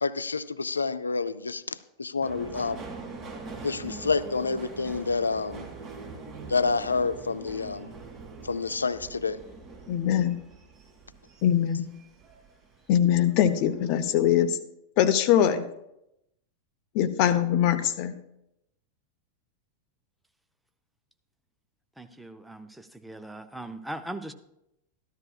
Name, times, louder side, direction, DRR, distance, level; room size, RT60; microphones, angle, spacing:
voice 1, 0.0-2.8 3.6-5.7 6.5-7.9 8.4-9.4, left 4 dB, 75° left, 15 dB, 0.4 m, -28 dB
Subway metro underground, 2.2-12.9 13.3-14.0 14.3-14.4, right 3 dB, 30° right, 2.1 m, -43 dB
voice 2, 9.9-10.4 11.4-11.9 12.9-14.6 15.0-15.7 16.9-18.2, left 10 dB, 45° left, 12 dB, 0.7 m, -22 dB
voice 3, 22.0-24.3, right 1 dB, 5° right, 8 dB, 0.7 m, -39 dB
14.0 x 12.0 x 2.4 m, 0.84 s
figure-of-eight pair, 90°, 0 cm